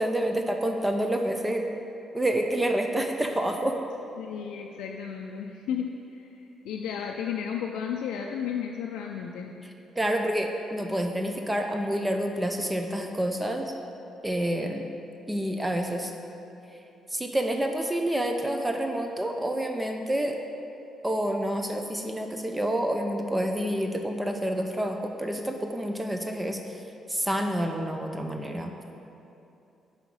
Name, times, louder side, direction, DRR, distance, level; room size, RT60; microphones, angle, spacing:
voice 1, 0.0-1.6 2.1-3.8 10.0-13.8 14.2-14.8 15.3-16.1 17.1-20.4 21.0-26.8 27.1-28.7, right 1 dB, 10° right, 4 dB, 0.5 m, -28 dB
voice 2, 4.2-6.3 6.6-9.5, left 7 dB, 85° left, 1 dB, 0.3 m, -33 dB
5.4 x 4.8 x 6.0 m, 2.8 s
cardioid pair, 90°, 0 cm